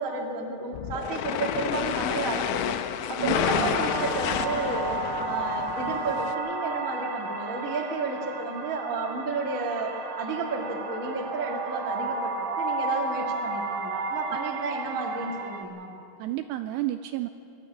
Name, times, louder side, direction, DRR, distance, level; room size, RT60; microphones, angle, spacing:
voice 1, 0.0-2.7 3.1-5.0 5.2-15.9, right 3 dB, 35° right, 0 dB, 1.2 m, -32 dB
sound 1, 0.7-6.3, left 11 dB, 80° left, 2.9 m, -30 dB
voice 2, 3.2-3.8 16.2-17.3, right 14 dB, 80° right, 9 dB, 2.5 m, -31 dB
sound 2, 3.3-15.6, right 3 dB, 65° right, 1.8 m, -33 dB
22.0 x 12.5 x 9.8 m, 2.5 s
omnidirectional pair, 5.3 m